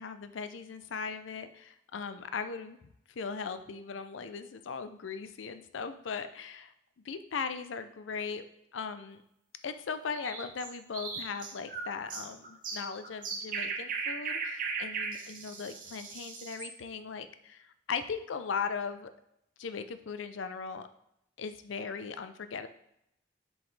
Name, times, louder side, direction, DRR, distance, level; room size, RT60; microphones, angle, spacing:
voice 1, 0.0-2.8 3.2-6.7 7.0-8.4 8.7-9.2 9.6-19.1 19.6-20.9 21.4-22.7, left 5 dB, 85° left, 10 dB, 0.5 m, -38 dB
sound 1, 10.1-16.7, right 4 dB, 45° right, 1.0 m, -37 dB
7.2 x 5.0 x 3.2 m, 0.78 s
head